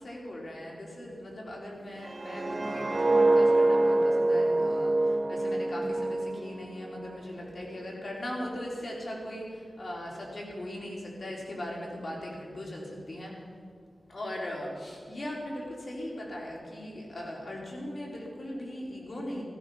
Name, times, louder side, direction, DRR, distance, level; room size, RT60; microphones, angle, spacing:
voice 1, 0.0-13.4 14.1-19.4, left 1 dB, 60° left, -2 dB, 3.7 m, -39 dB
sound 1, 2.1-7.1 7.5-7.8, right 2 dB, 40° right, 0.5 m, -25 dB
15.0 x 13.5 x 5.5 m, 2.1 s
wide cardioid pair, 75°, 0 cm